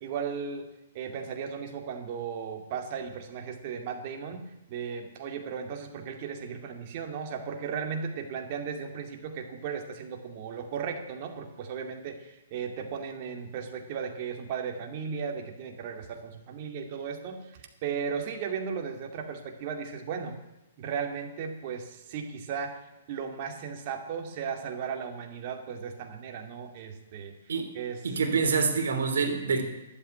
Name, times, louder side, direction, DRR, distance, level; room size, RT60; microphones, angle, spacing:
voice 1, 0.0-0.7 0.9-4.4 4.7-17.4 17.8-20.4 20.8-22.8 23.1-27.3 27.7-28.0, right 6 dB, 45° right, 4 dB, 2.4 m, -36 dB
voice 2, 28.0-29.7, right 5 dB, 75° right, 4 dB, 3.1 m, -26 dB
12.0 x 8.6 x 9.8 m, 0.96 s
hypercardioid pair, 140°, 0 cm